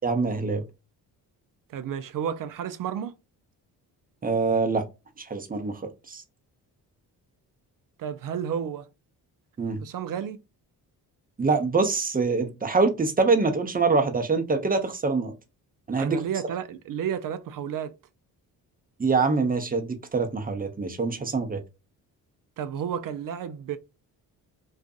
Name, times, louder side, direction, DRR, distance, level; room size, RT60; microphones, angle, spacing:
voice 1, 0.0-0.6 4.2-4.8 5.2-5.7 6.1-6.2 9.6-9.8 11.4-15.3 15.9-16.2 19.0-21.6, right 4 dB, 20° right, 0.8 m, -24 dB
voice 2, 1.7-3.1 8.0-8.9 9.8-10.4 16.0-17.9 22.6-23.8, right 8 dB, 50° right, 0.5 m, -31 dB
2.5 x 2.4 x 2.3 m
supercardioid pair, 55°, 42 cm